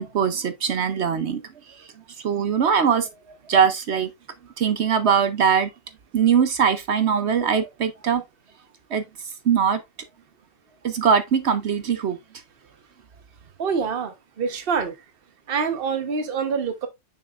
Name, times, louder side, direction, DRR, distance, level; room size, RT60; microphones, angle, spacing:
voice 1, 0.0-1.4 2.2-3.1 3.5-4.1 4.6-5.7 6.1-8.2 8.9-9.0 9.5-9.8 10.8-12.2, right 7 dB, 55° right, 0.8 m, -21 dB
voice 2, 13.6-14.9 15.5-16.9, right 5 dB, 40° right, 1.1 m, -26 dB
6.6 x 6.4 x 2.5 m
omnidirectional pair, 1.6 m